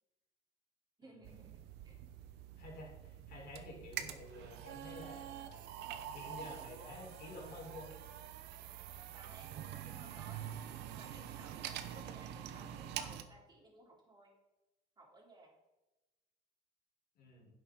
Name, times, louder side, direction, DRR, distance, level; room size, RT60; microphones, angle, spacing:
voice 1, 1.0-2.0 9.1-10.6 10.9-14.3 15.0-15.5, right 2 dB, 25° right, -2 dB, 3.6 m, -59 dB
sound 1, 1.2-13.2, right 10 dB, 85° right, 0.8 m, -46 dB
voice 2, 2.6-5.6 6.1-7.9 17.2-17.5, left 2 dB, 65° left, -2 dB, 4.0 m, -51 dB
10.5 x 8.0 x 3.9 m, 1.0 s
cardioid pair, 110°, 17 cm